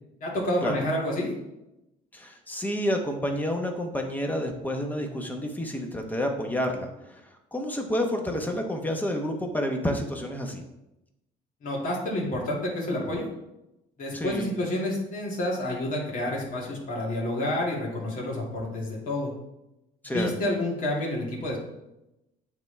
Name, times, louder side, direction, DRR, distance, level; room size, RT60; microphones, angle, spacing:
voice 1, 0.2-1.3 11.6-13.3 14.0-19.3 20.0-21.6, left 1 dB, 55° left, -3 dB, 2.2 m, -29 dB
voice 2, 2.1-10.6 14.1-14.5 20.0-20.3, equal, 10° left, 3 dB, 1.1 m, -29 dB
8.9 x 3.6 x 3.4 m, 0.90 s
cardioid pair, 110°, 17 cm